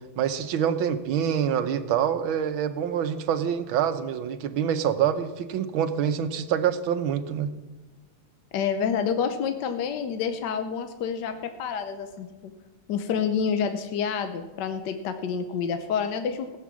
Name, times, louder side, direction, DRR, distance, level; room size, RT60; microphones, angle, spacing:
voice 1, 0.2-7.5, right 8 dB, 75° right, 10 dB, 1.6 m, -26 dB
voice 2, 8.5-12.5 12.9-16.6, left 7 dB, 65° left, 7 dB, 1.2 m, -28 dB
16.5 x 8.4 x 6.1 m, 1.2 s
omnidirectional pair, 2.3 m